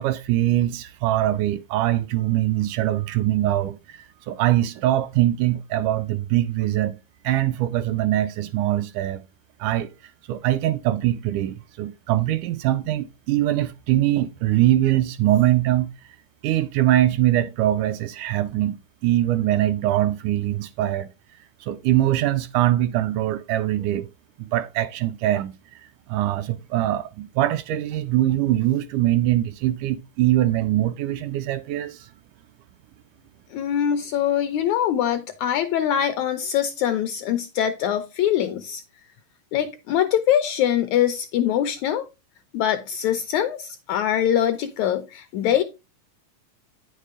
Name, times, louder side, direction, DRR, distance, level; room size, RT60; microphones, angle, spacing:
voice 1, 0.0-7.0 7.2-9.2 9.6-9.9 10.3-15.9 16.4-18.8 19.0-21.1 21.6-24.1 24.4-25.5 26.1-32.1, right 14 dB, 80° right, 1.9 m, -22 dB
voice 2, 33.5-38.8 39.5-42.1 42.5-45.6, left 10 dB, 80° left, 1.7 m, -23 dB
9.6 x 6.5 x 3.6 m
omnidirectional pair, 3.9 m